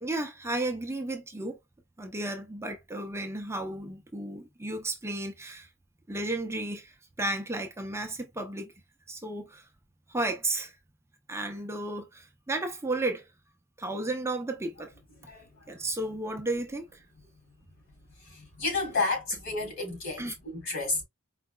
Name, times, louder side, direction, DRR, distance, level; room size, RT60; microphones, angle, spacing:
voice 1, 0.0-1.6 2.0-5.7 6.1-8.7 9.1-9.7 10.1-10.8 11.3-13.3 13.8-14.9 15.7-17.0 20.2-20.3, right 2 dB, 10° right, 0.6 m, -33 dB
voice 2, 18.3-21.0, left 3 dB, 60° left, 2.9 m, -31 dB
4.8 x 3.3 x 2.3 m
head